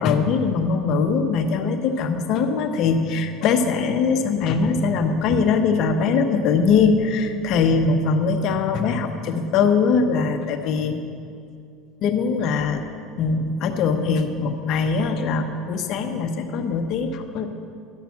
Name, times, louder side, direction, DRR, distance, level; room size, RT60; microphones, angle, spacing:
voice 1, 0.0-11.0 12.0-12.8 13.2-17.5, left 5 dB, 60° left, 6 dB, 1.0 m, -21 dB
12.0 x 5.9 x 7.2 m, 2.4 s
hypercardioid pair, 90°, 0 cm